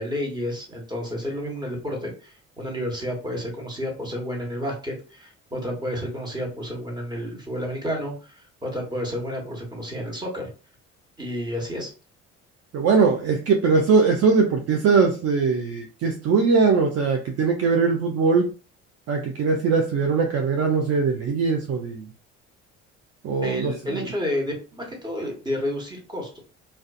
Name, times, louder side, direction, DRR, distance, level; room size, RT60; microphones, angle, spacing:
voice 1, 0.0-10.5 11.2-11.9 23.4-26.4, equal, 10° right, -1 dB, 1.2 m, -30 dB
voice 2, 12.7-18.4 19.1-22.0 23.2-23.7, right 4 dB, 45° right, 2 dB, 0.5 m, -21 dB
2.4 x 2.2 x 2.4 m, 0.35 s
hypercardioid pair, 60°, 36 cm